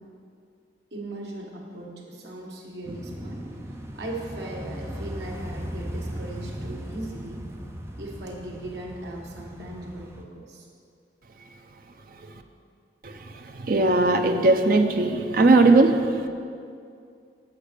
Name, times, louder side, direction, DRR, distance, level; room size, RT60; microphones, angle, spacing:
voice 1, 0.9-3.4 3.9-7.5 8.0-10.7, right 1 dB, 70° right, -2 dB, 1.6 m, -38 dB
sound 1, 2.8-10.2, equal, 15° right, 0.6 m, -37 dB
voice 2, 12.1-12.4 13.0-16.3, right 2 dB, 55° right, 6 dB, 0.6 m, -20 dB
8.1 x 6.2 x 6.7 m, 2.4 s
head